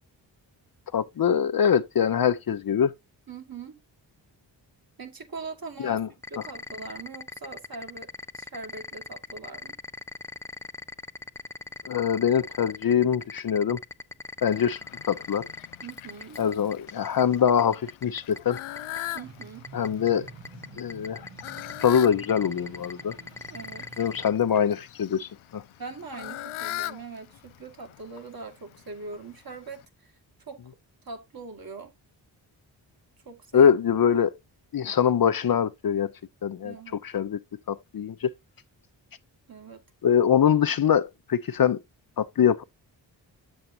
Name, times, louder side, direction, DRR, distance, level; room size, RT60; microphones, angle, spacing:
voice 1, 0.9-2.9 5.8-6.1 11.9-13.8 14.4-14.8 15.1-15.5 16.4-18.6 19.7-20.3 20.8-21.2 21.8-23.1 24.0-25.6 33.5-34.4 34.7-36.1 36.4-36.7 37.0-37.4 37.7-38.3 40.0-41.8 42.2-42.6, left 8 dB, 45° left, 0.7 m, -23 dB
voice 2, 3.3-3.8 5.0-6.0 6.3-9.8 15.8-16.4 19.1-19.7 23.5-23.9 25.8-30.1 30.5-30.7 31.1-31.9 33.3-33.7 36.6-37.0 39.5-39.8, right 4 dB, 45° right, 1.9 m, -41 dB
sound 1, 6.2-24.3, left 3 dB, 5° left, 0.4 m, -39 dB
Fowl, 14.5-29.8, left 15 dB, 90° left, 0.6 m, -42 dB
sound 2, 19.2-24.3, right 6 dB, 65° right, 1.5 m, -49 dB
7.6 x 7.2 x 2.7 m
supercardioid pair, 40°, 47 cm